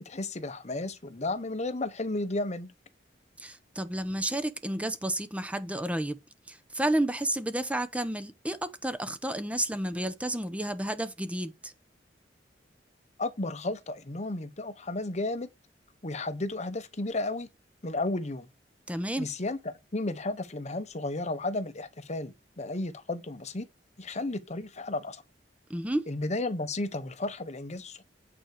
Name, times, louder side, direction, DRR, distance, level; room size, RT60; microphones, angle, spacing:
voice 1, 0.0-2.7 13.2-15.5 16.0-17.5 17.8-18.5 19.2-23.7 24.0-25.2 26.1-28.0, left 2 dB, 40° left, 1.0 m, -33 dB
voice 2, 3.4-6.2 6.5-11.7 18.9-19.3 25.7-26.0, right 1 dB, 10° right, 0.8 m, -31 dB
9.2 x 4.6 x 6.5 m
head